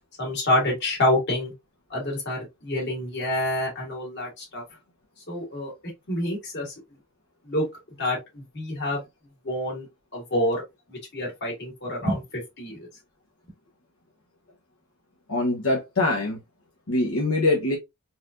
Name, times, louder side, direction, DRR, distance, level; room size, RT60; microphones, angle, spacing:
voice 1, 0.2-1.5 1.9-4.6 5.3-5.7 6.1-6.7 7.4-7.6 8.0-9.0 9.4-9.9 10.1-10.6 10.9-12.9, left 1 dB, 55° left, 2.0 m, -27 dB
voice 2, 15.3-16.4 16.9-17.8, left 2 dB, 85° left, 1.1 m, -23 dB
4.1 x 2.7 x 2.4 m
head